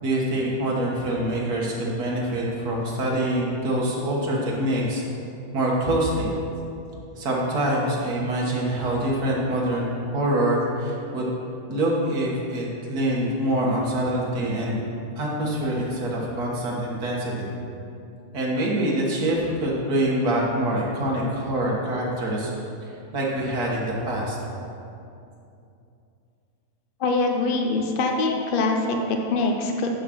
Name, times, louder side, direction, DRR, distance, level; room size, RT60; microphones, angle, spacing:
voice 1, 0.0-5.0 5.5-6.3 7.2-11.3 11.7-14.8 15.2-17.5 18.3-22.5 23.1-24.4, right 1 dB, 80° right, -4 dB, 1.9 m, -25 dB
voice 2, 27.0-29.9, left 3 dB, 50° left, 2 dB, 0.6 m, -23 dB
11.0 x 3.8 x 6.0 m, 2.7 s
omnidirectional pair, 1.6 m